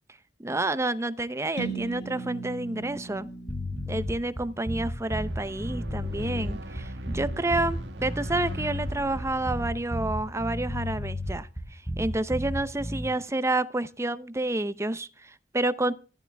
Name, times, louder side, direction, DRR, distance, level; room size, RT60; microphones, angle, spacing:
voice 1, 0.4-3.3 3.9-15.9, right 2 dB, 15° right, 0.7 m, -29 dB
sound 1, 1.6-5.4, right 4 dB, 90° left, 4.3 m, -39 dB
sound 2, 3.5-13.1, equal, 10° left, 2.6 m, -32 dB
sound 3, 5.0-11.3, right 1 dB, 85° right, 1.8 m, -42 dB
14.5 x 12.0 x 3.4 m
head